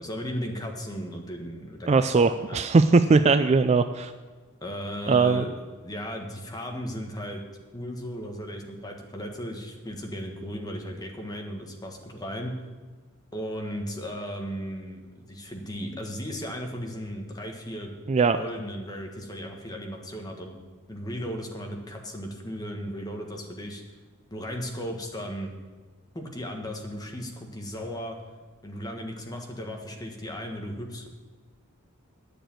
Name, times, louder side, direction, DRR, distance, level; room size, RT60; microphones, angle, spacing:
voice 1, 0.0-2.6 4.6-5.5 5.8-7.4 7.7-12.5 13.3-15.0 15.3-17.9 18.4-20.6 20.9-23.8 24.3-25.5 26.1-28.2 28.6-31.1, equal, 20° left, 2 dB, 1.5 m, -36 dB
voice 2, 1.9-4.1 5.1-5.4 18.1-18.4, right 4 dB, 30° right, 10 dB, 0.3 m, -20 dB
10.0 x 6.8 x 9.0 m, 1.4 s
head